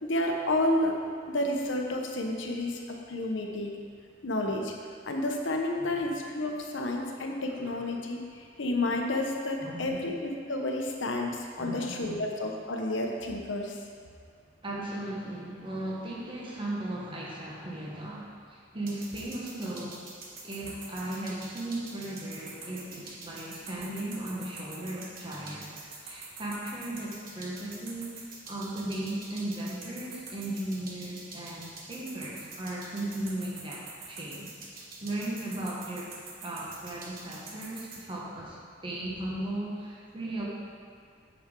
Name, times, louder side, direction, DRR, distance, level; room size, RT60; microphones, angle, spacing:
voice 1, 0.0-0.9 1.3-2.8 3.1-3.7 4.2-4.7 5.1-13.8, left 1 dB, 80° left, 1 dB, 0.9 m, -30 dB
voice 2, 7.5-7.8 9.6-10.1 11.6-12.2 14.6-20.0 20.4-36.1 36.4-40.4, right 1 dB, 25° right, -5 dB, 1.2 m, -37 dB
sound 1, 18.9-38.0, right 4 dB, 50° right, 1.1 m, -45 dB
8.4 x 6.2 x 3.8 m, 2.1 s
head